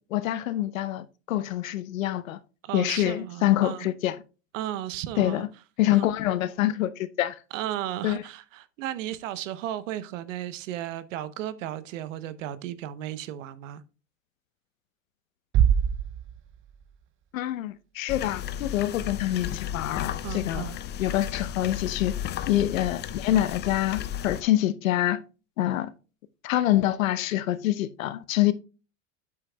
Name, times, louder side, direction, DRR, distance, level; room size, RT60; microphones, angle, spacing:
voice 1, 0.0-2.4 2.7-4.1 5.2-5.5 5.8-7.3 8.0-8.2 17.3-20.7 21.0-22.2 22.5-25.2 25.6-25.9 26.4-28.5, left 14 dB, 80° left, 0.8 m, -26 dB
voice 2, 2.6-3.9 4.5-5.5 5.9-6.1 7.5-13.8 20.2-20.8, right 12 dB, 70° right, 0.9 m, -34 dB
Bass drum, 15.5-17.2, right 9 dB, 30° right, 0.6 m, -25 dB
sound 1, 18.1-24.4, left 10 dB, 25° left, 0.5 m, -34 dB
9.5 x 7.7 x 2.3 m
hypercardioid pair, 100°, 39 cm